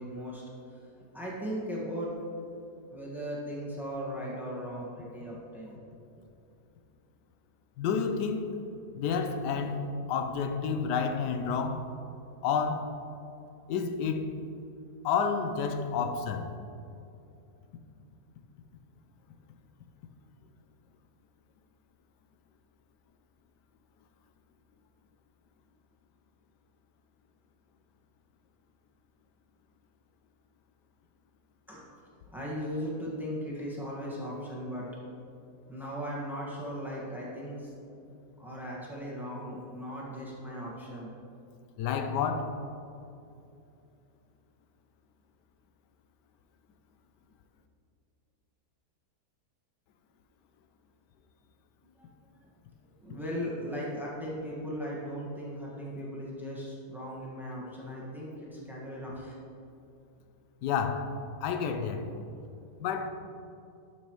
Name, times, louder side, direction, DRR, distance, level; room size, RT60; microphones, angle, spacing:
voice 1, 0.0-2.1 2.9-5.7 6.2-6.3 31.7-31.9 32.3-34.9 35.7-37.7 38.4-41.1 51.8-52.1 52.3-52.4 53.0-59.3, equal, ahead, 1.3 m, -38 dB
voice 2, 7.8-8.6 8.9-11.9 12.4-12.9 13.7-14.3 15.0-16.5 41.8-42.6 60.6-61.1 61.4-62.1 62.8-63.1, left 6 dB, 90° left, 1.2 m, -30 dB
12.0 x 6.0 x 3.0 m
omnidirectional pair, 1.8 m